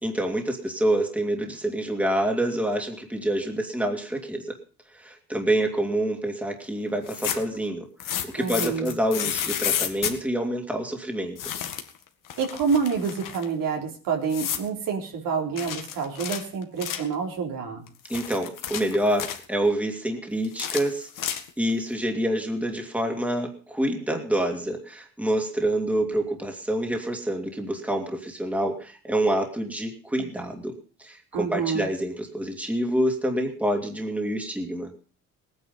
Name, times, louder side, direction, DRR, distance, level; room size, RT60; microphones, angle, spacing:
voice 1, 0.0-4.6 4.9-11.4 18.1-34.9, right 1 dB, 5° right, 3 dB, 2.6 m, -27 dB
sound 1, 7.0-7.6 8.0-10.2 11.4-12.0 12.3-13.5 14.3-14.7 15.6-17.1 17.9-19.4 20.4-21.7, left 9 dB, 65° left, 2.0 m, -31 dB
voice 2, 8.4-8.9 12.4-17.9 31.3-31.9, right 6 dB, 70° right, 2 dB, 3.7 m, -28 dB
19.0 x 9.8 x 5.5 m, 0.39 s
cardioid pair, 130°, 35 cm